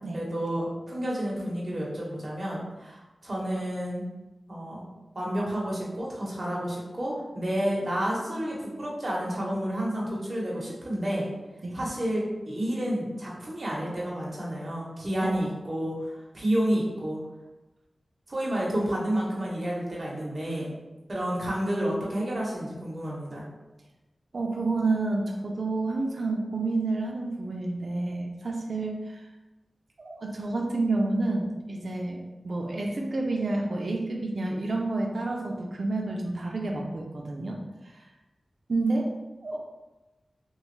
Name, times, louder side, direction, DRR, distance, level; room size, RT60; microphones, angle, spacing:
voice 1, 0.1-4.0 4.5-4.8 5.1-11.3 11.7-17.2 18.3-20.7 21.1-23.5, equal, 40° right, -5 dB, 0.8 m, -30 dB
voice 2, 24.3-29.2 30.0-37.6 37.8-38.0 38.7-39.1 39.4-39.6, right 2 dB, 60° right, 0 dB, 0.4 m, -29 dB
2.9 x 2.3 x 3.1 m, 1.1 s
wide cardioid pair, 105°, 0 cm